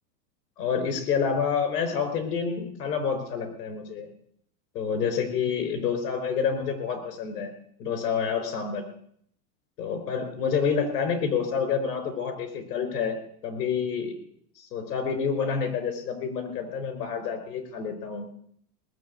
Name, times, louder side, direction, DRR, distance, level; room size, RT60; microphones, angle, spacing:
voice 1, 0.6-4.1 4.7-7.5 7.8-8.8 9.8-13.2 13.4-14.1 14.6-18.3, left 6 dB, 80° left, 8 dB, 4.6 m, -28 dB
19.0 x 7.2 x 8.4 m, 0.66 s
supercardioid pair, 150°, 47 cm